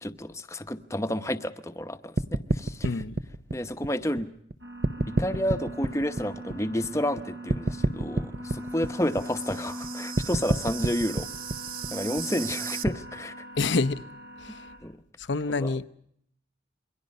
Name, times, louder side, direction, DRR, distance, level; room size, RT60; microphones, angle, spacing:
voice 1, 0.0-2.9 3.5-4.3 5.1-11.3 11.9-13.3 14.8-15.0 15.6-15.7, left 1 dB, 15° left, 0.9 m, -30 dB
sound 1, 2.2-4.5 4.8-7.2 7.5-12.9, right 2 dB, 45° right, 0.9 m, -29 dB
voice 2, 2.8-3.2 13.6-14.0 14.4-14.7 15.2-15.8, left 3 dB, 75° left, 0.8 m, -27 dB
sound 2, 4.6-14.8, equal, 75° right, 5.2 m, -41 dB
28.0 x 23.0 x 5.4 m
head